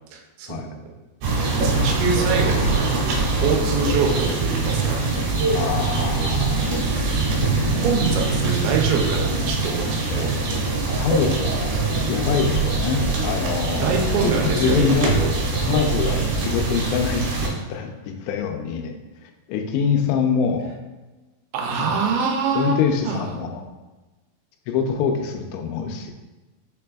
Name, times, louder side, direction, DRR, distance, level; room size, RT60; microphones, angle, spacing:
voice 1, 0.1-0.8 1.6-5.0 6.0-7.3 7.7-10.4 13.7-14.8 15.1-15.3 21.5-22.8 23.0-23.3, right 5 dB, 90° right, 1 dB, 2.8 m, -25 dB
sound 1, 1.2-17.5, right 3 dB, 75° right, 2.6 m, -23 dB
voice 2, 5.5-6.8 10.1-10.3 11.0-11.5 12.0-15.1 15.6-19.0 19.2-20.7 21.7-22.1 22.6-23.6 24.7-26.1, left 6 dB, 85° left, 4 dB, 2.7 m, -25 dB
6.4 x 3.3 x 2.3 m, 1.2 s
omnidirectional pair, 4.9 m